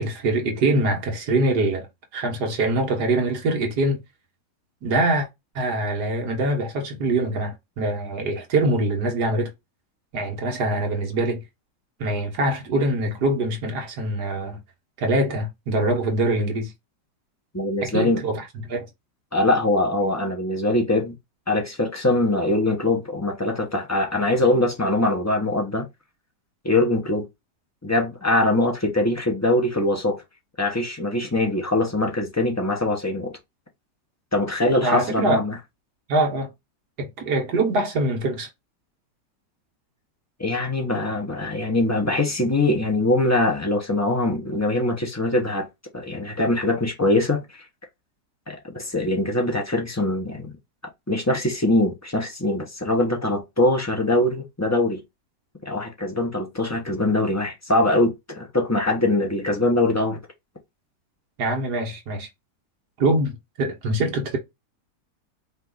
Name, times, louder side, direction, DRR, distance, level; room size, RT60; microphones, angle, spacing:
voice 1, 0.0-1.9 2.1-4.0 4.8-5.3 5.6-9.5 10.1-11.4 12.0-14.6 15.0-16.7 17.8-18.9 34.8-35.4 36.1-36.5 37.0-38.5 61.4-62.3 63.0-64.4, right 2 dB, 65° right, 1.9 m, -24 dB
voice 2, 17.5-18.2 19.3-21.1 21.5-25.9 26.6-27.3 27.8-30.2 30.6-33.4 34.3-35.6 40.4-45.7 45.9-47.6 48.5-50.5 51.1-55.0 55.6-60.2, left 2 dB, 20° left, 0.4 m, -22 dB
5.1 x 2.5 x 3.8 m
omnidirectional pair, 1.9 m